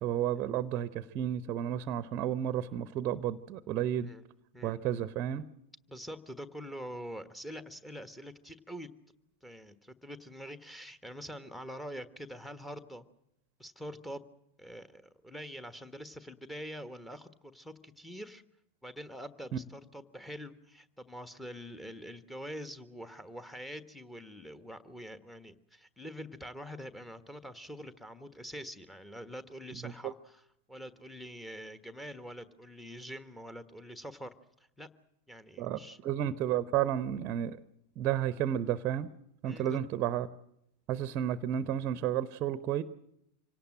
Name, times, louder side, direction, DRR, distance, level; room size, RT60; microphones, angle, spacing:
voice 1, 0.0-4.1 4.6-5.4 19.5-19.6 29.7-30.1 35.6-37.6 38.0-39.1 39.4-40.3 40.9-42.8, right 10 dB, 35° right, 16 dB, 0.8 m, -32 dB
voice 2, 5.9-8.9 9.4-13.1 13.6-14.3 14.6-18.4 18.8-30.4 30.7-34.3 34.8-34.9 35.3-36.0 39.4-39.8, equal, 5° left, 10 dB, 1.4 m, -45 dB
26.0 x 18.0 x 7.6 m, 0.81 s
figure-of-eight pair, 90°, 0 cm